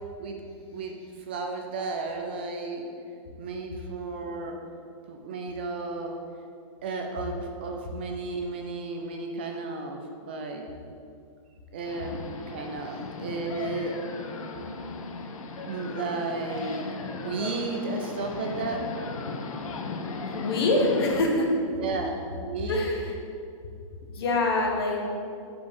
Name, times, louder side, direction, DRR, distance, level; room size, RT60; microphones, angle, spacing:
voice 1, 1.3-2.9 3.4-4.6 5.1-6.1 6.8-10.0 10.3-10.7 11.7-12.2 12.5-13.9 15.7-16.9 17.1-18.9 21.7-22.2 22.5-22.8, right 3 dB, 20° right, 2 dB, 0.3 m, -33 dB
sound 1, 11.9-21.2, left 3 dB, 80° left, 0.8 m, -37 dB
voice 2, 20.3-21.5 22.7-23.1 24.1-25.0, left 2 dB, 45° left, 0 dB, 1.2 m, -25 dB
7.6 x 6.3 x 3.5 m, 2.4 s
hypercardioid pair, 180°, 17 cm